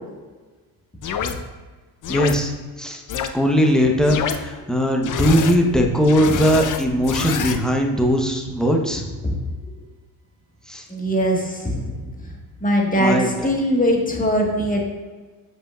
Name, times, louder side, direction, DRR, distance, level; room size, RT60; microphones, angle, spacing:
sound 1, 1.0-1.3 2.0-2.3 3.1-3.3 4.0-4.4 5.0-5.6 6.0-7.6, left 8 dB, 40° left, 0.6 m, -26 dB
voice 1, 2.1-2.5 2.8-3.0 3.3-9.0 10.7-10.8 13.0-13.3, equal, ahead, 1 dB, 1.0 m, -19 dB
voice 2, 10.9-12.4 12.6-14.9, equal, 15° left, 0 dB, 1.7 m, -21 dB
7.7 x 5.2 x 2.5 m, 1.3 s
hypercardioid pair, 60°, 47 cm